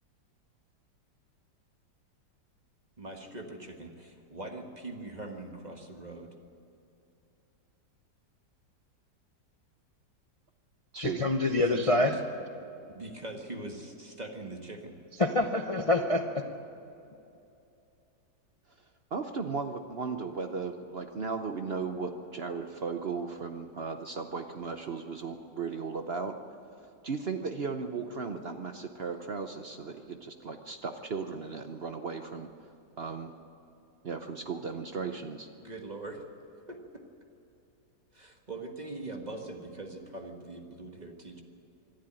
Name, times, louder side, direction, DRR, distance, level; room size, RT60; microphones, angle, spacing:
voice 1, 3.0-6.3 11.5-12.2 12.9-15.0 35.6-36.2 36.7-36.8 38.1-41.4, right 2 dB, 25° right, 3 dB, 1.6 m, -42 dB
voice 2, 11.0-12.2 15.2-16.5, left 2 dB, 55° left, 5 dB, 0.3 m, -26 dB
voice 3, 19.1-26.4 27.0-32.5 33.0-33.3 34.0-35.5, right 5 dB, 55° right, 7 dB, 0.7 m, -36 dB
25.0 x 11.5 x 9.0 m, 2.7 s
omnidirectional pair, 2.0 m